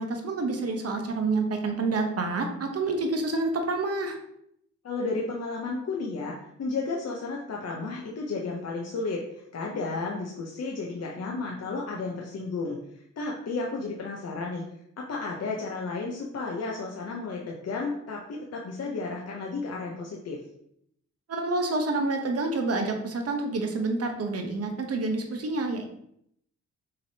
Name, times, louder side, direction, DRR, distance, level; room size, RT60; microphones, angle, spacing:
voice 1, 0.0-4.2 21.3-25.8, right 3 dB, 55° right, 4 dB, 0.9 m, -28 dB
voice 2, 4.8-12.8 13.2-14.6 15.0-20.4, left 3 dB, 60° left, -1 dB, 0.8 m, -33 dB
5.7 x 3.3 x 2.8 m, 0.72 s
cardioid pair, 95°, 29 cm